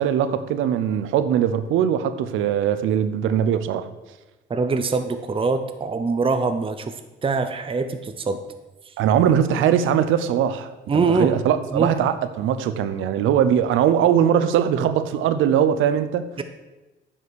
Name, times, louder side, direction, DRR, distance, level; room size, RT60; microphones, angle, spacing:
voice 1, 0.0-3.9 9.0-16.3, right 9 dB, 90° right, 12 dB, 0.7 m, -21 dB
voice 2, 4.5-6.9 7.2-8.4 8.9-9.0 10.9-11.3 11.7-11.9 16.4-16.5, right 4 dB, 25° right, 8 dB, 0.7 m, -23 dB
9.8 x 5.6 x 6.3 m, 1.1 s
cardioid pair, 90°, 20 cm